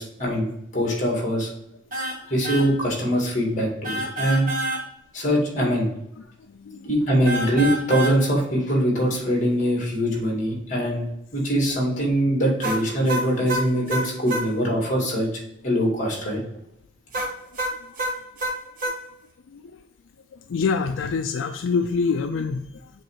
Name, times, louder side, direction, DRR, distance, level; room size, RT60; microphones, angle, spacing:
voice 1, 0.0-1.5 2.3-4.5 5.1-5.9 6.8-11.1 11.3-15.3 15.6-16.4, equal, 40° left, -1 dB, 2.2 m, -23 dB
sound 1, 1.9-2.2 2.4-2.7 3.8-4.8 7.3-8.2 12.6-14.5 17.1-19.0, right 1 dB, 45° right, 1.5 m, -27 dB
voice 2, 6.5-6.9 19.5-19.8 20.5-22.9, left 5 dB, 90° left, 7 dB, 0.4 m, -26 dB
7.5 x 3.2 x 4.6 m, 0.83 s
head